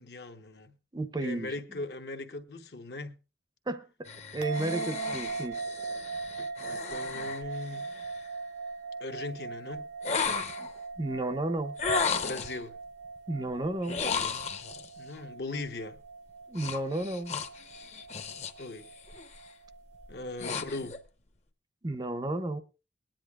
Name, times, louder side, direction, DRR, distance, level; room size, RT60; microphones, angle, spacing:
voice 1, 0.0-0.7 1.2-3.2 6.4-7.9 9.0-9.9 12.2-12.8 15.0-16.0 18.6-18.9 20.1-21.0, left 2 dB, 70° left, 0.9 m, -39 dB
voice 2, 0.9-1.6 3.7-5.6 10.6-10.7 11.0-11.8 13.3-14.0 16.5-17.3 21.8-22.6, right 2 dB, 25° right, 0.5 m, -33 dB
sound 1, 4.1-8.3 10.0-10.8 11.8-12.6 13.8-14.9 16.6-18.7 19.0-19.4 19.9-21.0, left 5 dB, 40° left, 0.7 m, -34 dB
sound 2, 4.4-20.9, right 4 dB, 80° right, 0.7 m, -41 dB
20.5 x 10.0 x 2.3 m
head